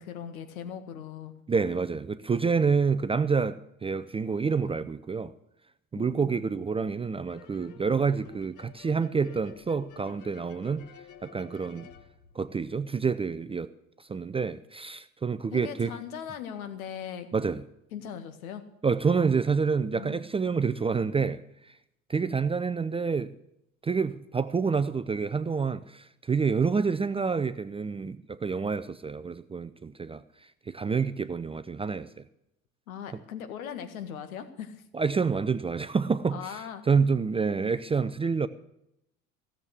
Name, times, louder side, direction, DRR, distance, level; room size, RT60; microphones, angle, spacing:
voice 1, 0.0-1.3 6.0-6.5 15.5-17.3 17.9-18.6 19.9-20.2 32.9-34.8 36.3-36.8, left 8 dB, 75° left, 1.8 m, -39 dB
voice 2, 1.5-5.3 5.9-10.8 11.2-11.9 12.4-13.7 14.1-15.9 17.3-17.6 18.8-21.7 22.1-23.3 23.8-30.2 30.7-32.1 34.9-38.5, right 5 dB, 15° right, 0.5 m, -28 dB
sound 1, 7.3-13.0, left 8 dB, 45° left, 1.3 m, -52 dB
16.0 x 7.5 x 8.3 m
hypercardioid pair, 70°, 43 cm